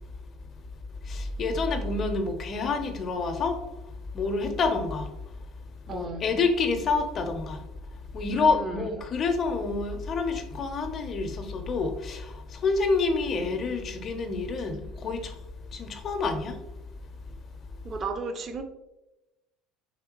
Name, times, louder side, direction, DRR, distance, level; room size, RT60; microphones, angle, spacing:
voice 1, 1.0-5.1 5.9-7.6 7.9-15.4 15.7-16.6, left 4 dB, 40° left, 0.6 m, -28 dB
voice 2, 5.9-6.2 8.3-8.8 17.8-18.6, right 3 dB, 35° right, 0.5 m, -34 dB
4.2 x 3.4 x 3.0 m
figure-of-eight pair, 65°, 0 cm